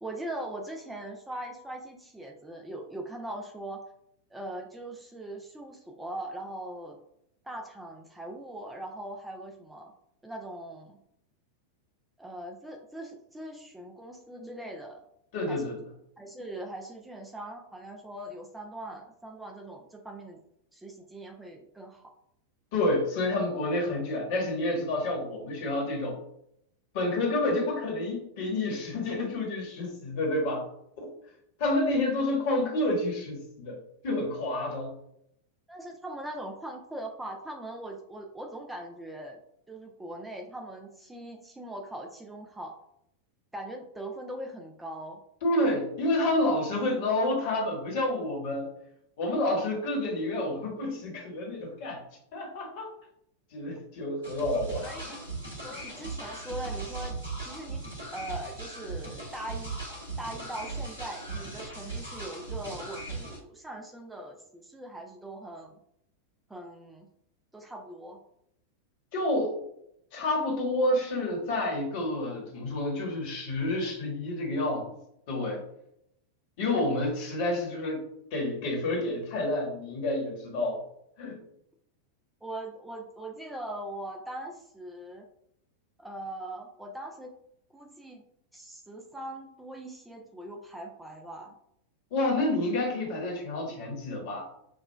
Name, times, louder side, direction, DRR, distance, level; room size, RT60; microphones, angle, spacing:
voice 1, 0.0-3.8 4.3-7.0 7.4-9.9 10.2-11.0 12.2-15.0 15.5-15.7 16.2-20.4 20.7-22.1 29.1-29.2 35.7-39.4 39.7-42.7 43.5-45.2 54.8-55.2 55.6-57.2 57.4-57.8 58.1-59.8 60.2-65.8 66.5-67.1 67.5-68.2 76.7-77.0 82.4-85.3 86.0-87.3 87.7-88.2 88.5-91.5, right 1 dB, 5° right, 2 dB, 0.4 m, -41 dB
voice 2, 15.3-15.7 22.7-26.1 26.9-30.6 31.0-31.1 31.6-34.9 45.4-48.7 49.2-52.0 52.3-52.9 53.5-55.2 69.1-69.5 70.1-74.9 75.3-75.6 76.6-78.0 78.3-80.8 81.2-81.4 92.1-94.5, left 1 dB, 50° left, 0 dB, 1.3 m, -29 dB
sound 1, 54.2-63.4, right 3 dB, 90° left, 1.3 m, -38 dB
6.2 x 2.2 x 2.2 m, 0.75 s
figure-of-eight pair, 90°, 0 cm